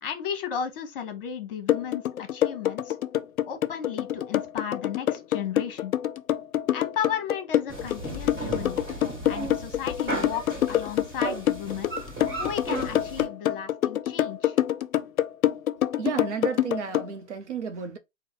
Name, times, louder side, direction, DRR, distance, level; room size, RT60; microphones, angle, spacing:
voice 1, 0.0-3.0 3.4-5.9 6.7-8.8 9.3-12.0 12.4-14.6, left 8 dB, 40° left, 1.0 m, -34 dB
sound 1, 1.7-17.1, left 12 dB, 85° left, 0.5 m, -25 dB
sound 2, 7.7-13.2, right 2 dB, 15° right, 1.6 m, -35 dB
voice 2, 16.0-18.0, right 6 dB, 60° right, 0.7 m, -32 dB
3.8 x 2.1 x 3.9 m
hypercardioid pair, 140°, 41 cm